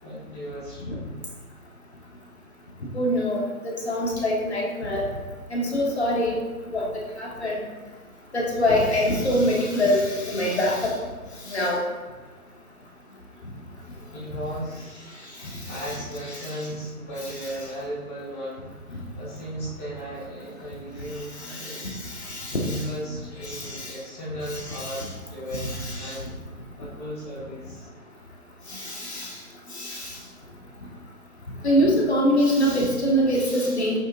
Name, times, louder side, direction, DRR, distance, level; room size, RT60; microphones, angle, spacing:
voice 1, 0.0-1.2 14.1-15.2 15.6-21.9 22.6-26.3 26.8-27.9, equal, 10° left, -15 dB, 1.3 m, -36 dB
voice 2, 2.9-5.1 5.5-6.4 6.7-6.9 7.2-7.6 8.3-11.0 11.4-11.8 15.4-16.0 16.3-16.7 21.3-22.9 23.4-24.0 24.5-25.1 25.5-26.2 28.7-29.4 29.7-30.2 31.6-34.0, equal, 45° left, -3 dB, 1.9 m, -25 dB
9.1 x 7.1 x 2.8 m, 1.4 s
figure-of-eight pair, 170°, 45 cm